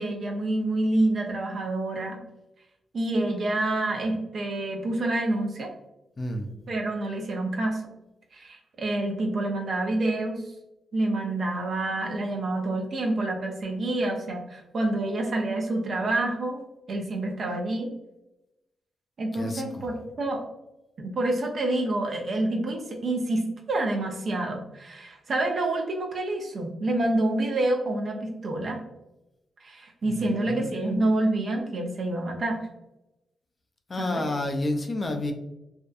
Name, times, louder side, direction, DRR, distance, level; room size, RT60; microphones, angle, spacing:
voice 1, 0.0-2.2 2.9-5.7 6.7-7.8 8.3-10.4 10.9-16.6 16.9-17.9 19.2-20.4 21.0-28.8 29.6-32.6 34.0-34.2, right 2 dB, 55° right, 2 dB, 0.6 m, -27 dB
voice 2, 6.2-6.5 19.3-19.9 30.0-31.3 33.9-35.3, left 2 dB, 40° left, 4 dB, 0.4 m, -31 dB
2.6 x 2.2 x 2.4 m, 0.92 s
hypercardioid pair, 40°, 0 cm